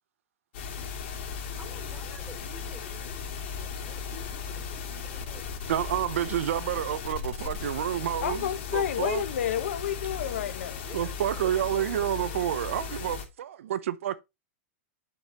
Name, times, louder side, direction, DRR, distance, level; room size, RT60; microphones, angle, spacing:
sound 1, 0.5-13.2, left 6 dB, 55° left, 2.5 m, -37 dB
voice 1, 1.6-6.5 10.8-13.0, equal, 5° right, 3.4 m, -51 dB
voice 2, 5.7-9.2 10.9-14.2, right 11 dB, 75° right, 0.7 m, -29 dB
voice 3, 8.2-10.8, left 10 dB, 80° left, 1.1 m, -30 dB
7.9 x 4.1 x 4.9 m
supercardioid pair, 175°, 7 cm